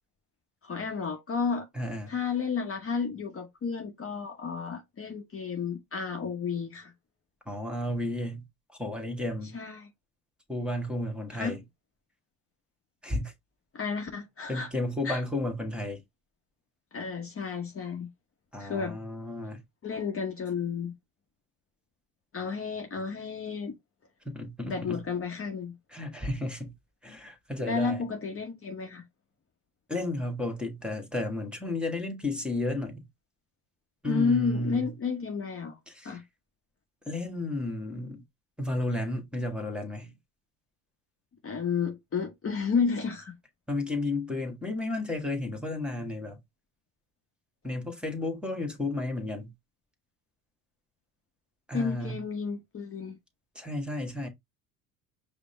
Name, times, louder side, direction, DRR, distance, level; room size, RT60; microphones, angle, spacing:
voice 1, 0.6-1.7 2.1-6.9 9.5-9.9 11.3-11.6 13.7-14.7 15.0-15.2 16.9-18.1 18.6-19.0 19.8-20.9 22.3-23.7 24.7-25.8 27.6-29.0 34.0-35.8 36.0-36.2 41.4-43.3 51.7-53.2, left 5 dB, 30° left, 0.9 m, -31 dB
voice 2, 1.7-2.1 7.5-8.4 8.8-9.6 10.5-11.6 13.0-13.3 14.5-16.0 18.5-19.6 24.2-25.0 25.9-26.7 27.0-28.0 29.9-33.1 34.0-34.9 35.9-36.2 37.1-38.2 38.6-40.1 43.7-46.4 47.6-49.5 51.7-52.2 53.5-54.3, left 2 dB, ahead, 1.5 m, -32 dB
5.1 x 2.1 x 4.2 m
hypercardioid pair, 75°, 44 cm